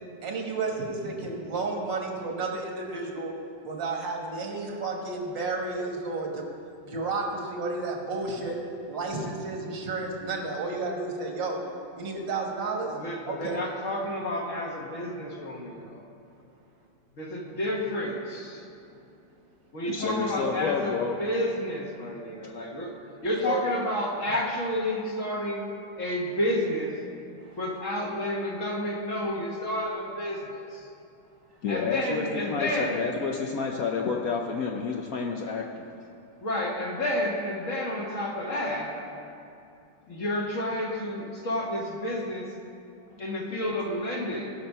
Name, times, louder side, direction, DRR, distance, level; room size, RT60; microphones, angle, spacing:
voice 1, 0.2-3.4 3.6-6.4 6.8-8.6 8.9-11.6 12.0-12.9 13.3-13.6 23.5-23.6 27.4-27.6, right 3 dB, 75° right, 0 dB, 2.2 m, -32 dB
voice 2, 12.9-16.0 17.2-18.6 19.7-22.9 23.2-25.6 26.0-27.0 27.6-30.9 31.7-33.0 36.4-38.9 40.1-42.5 43.2-44.5, left 1 dB, 45° left, -1 dB, 1.6 m, -30 dB
voice 3, 19.9-21.1 31.6-35.9, left 5 dB, 65° left, 1 dB, 1.0 m, -30 dB
16.5 x 5.9 x 5.4 m, 2.7 s
omnidirectional pair, 2.0 m